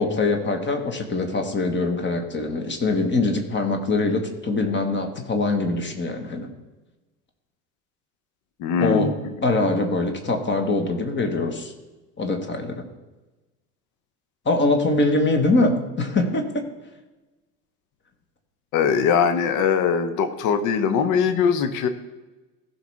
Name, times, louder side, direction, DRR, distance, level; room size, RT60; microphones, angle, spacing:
voice 1, 0.0-6.5 8.8-9.1 9.4-11.7 12.2-12.8 14.4-16.6, left 2 dB, 25° left, 5 dB, 1.6 m, -23 dB
voice 2, 8.6-9.1 18.7-21.9, left 6 dB, 40° left, 9 dB, 1.0 m, -21 dB
16.0 x 5.6 x 3.5 m, 1.1 s
figure-of-eight pair, 70°, 47 cm